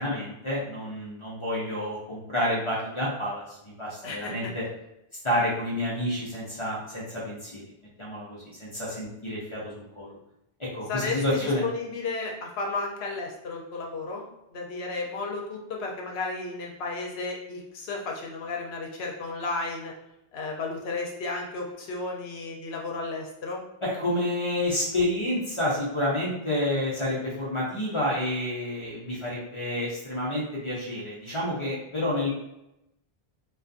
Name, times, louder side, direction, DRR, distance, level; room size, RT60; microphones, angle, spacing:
voice 1, 0.0-4.6 5.2-7.6 8.0-10.2 10.7-11.6 23.8-32.3, left 1 dB, 40° left, -6 dB, 0.5 m, -29 dB
voice 2, 4.0-4.5 10.9-14.2 14.5-19.9 20.3-23.6, left 3 dB, 80° left, 0 dB, 0.8 m, -33 dB
2.4 x 2.3 x 2.5 m, 0.86 s
omnidirectional pair, 1.1 m